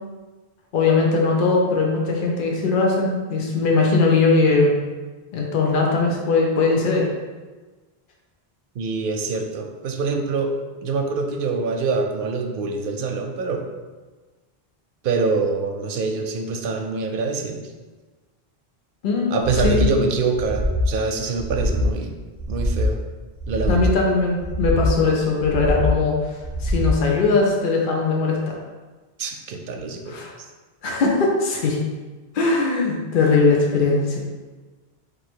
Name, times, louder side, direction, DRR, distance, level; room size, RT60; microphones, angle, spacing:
voice 1, 0.7-4.7 5.3-7.1 19.0-19.9 23.7-26.3 26.6-28.5 30.1-30.3 30.8-31.8 32.3-34.2, left 3 dB, 55° left, -1 dB, 0.9 m, -20 dB
voice 2, 8.8-10.5 10.8-13.6 15.0-17.6 19.3-22.1 22.5-23.0 23.5-23.9 29.2-30.2, right 4 dB, 65° right, 3 dB, 0.7 m, -25 dB
sound 1, 19.4-19.9 20.3-20.9 21.3-21.9 22.3-22.9 23.3-23.9 24.4-25.0 25.4-26.0 26.4-27.0, left 1 dB, 20° right, 0.7 m, -23 dB
3.8 x 2.7 x 4.4 m, 1.3 s
omnidirectional pair, 1.0 m